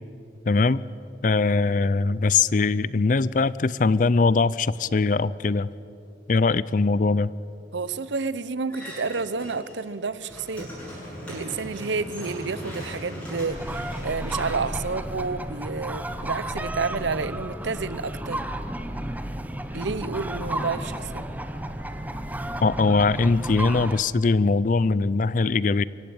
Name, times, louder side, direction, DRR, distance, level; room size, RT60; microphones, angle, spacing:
voice 1, 0.5-0.8 1.2-5.7 6.3-7.3 22.6-25.8, left 3 dB, 45° left, 19 dB, 0.5 m, -21 dB
voice 2, 7.7-10.7 11.3-18.4 19.7-21.2, right 4 dB, 80° right, 16 dB, 0.8 m, -30 dB
sound 1, 8.7-9.8 10.1-15.5, equal, 5° left, 7.1 m, -38 dB
sound 2, 13.5-24.0, right 1 dB, 10° right, 0.9 m, -32 dB
25.0 x 16.0 x 8.7 m, 2.8 s
head